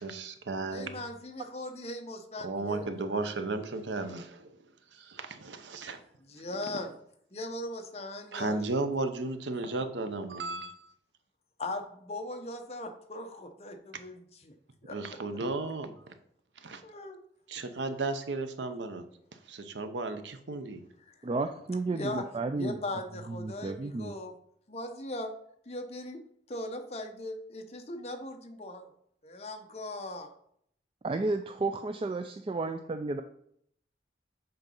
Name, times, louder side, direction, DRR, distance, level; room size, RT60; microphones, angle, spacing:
voice 1, 0.0-1.0 2.4-6.0 6.5-6.8 8.3-10.9 14.9-16.1 16.6-16.8 17.5-19.1 19.5-20.8, right 3 dB, 85° right, 9 dB, 0.8 m, -35 dB
voice 2, 0.7-2.9 6.2-6.9 7.3-8.6 9.6-9.7 11.6-14.5 14.8-15.2 16.8-17.2 21.1-21.2 21.9-22.3 22.5-24.3 24.7-25.3 25.7-26.2 26.5-28.9 29.2-30.3, left 1 dB, 35° left, 6 dB, 0.8 m, -39 dB
voice 3, 21.2-22.7 23.3-24.1 31.0-33.2, right 3 dB, 30° right, 8 dB, 0.3 m, -32 dB
7.9 x 3.9 x 5.3 m, 0.70 s
head